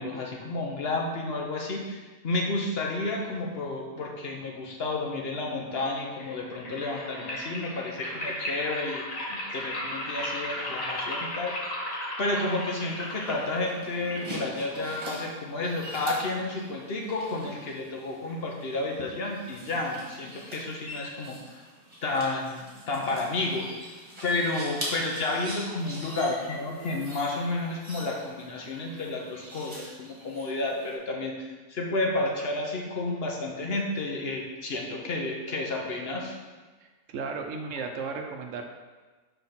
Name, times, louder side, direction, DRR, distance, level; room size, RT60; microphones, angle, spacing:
voice 1, 0.0-11.5 12.2-21.6 22.0-23.8 24.2-36.4, left 2 dB, 55° left, 0 dB, 1.0 m, -31 dB
sound 1, 6.1-15.1, left 1 dB, 90° left, 1.7 m, -36 dB
sound 2, 12.3-31.0, equal, 30° right, 1.6 m, -43 dB
voice 2, 36.8-38.6, right 4 dB, 75° right, 4 dB, 1.0 m, -35 dB
5.7 x 3.5 x 5.7 m, 1.3 s
omnidirectional pair, 1.4 m